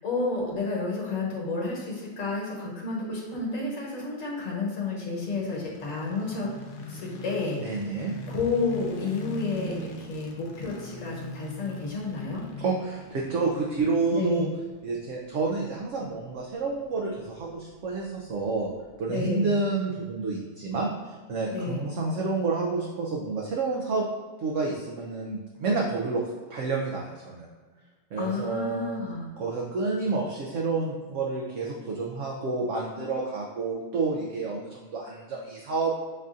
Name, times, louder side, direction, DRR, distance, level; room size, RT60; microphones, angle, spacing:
voice 1, 0.0-6.5 6.9-8.0 8.3-12.4 14.1-14.5 19.1-19.6 21.5-21.8 28.2-29.3, left 3 dB, 60° left, -4 dB, 1.4 m, -31 dB
sound 1, 5.0-19.1, left 2 dB, 85° left, 1.1 m, -43 dB
voice 2, 7.6-8.1 12.6-14.5 14.8-18.7 19.0-24.0 24.4-26.2 26.5-27.5 28.1-29.0 29.4-35.9, right 3 dB, 70° right, -2 dB, 0.8 m, -29 dB
6.4 x 2.6 x 2.4 m, 1.3 s
omnidirectional pair, 1.7 m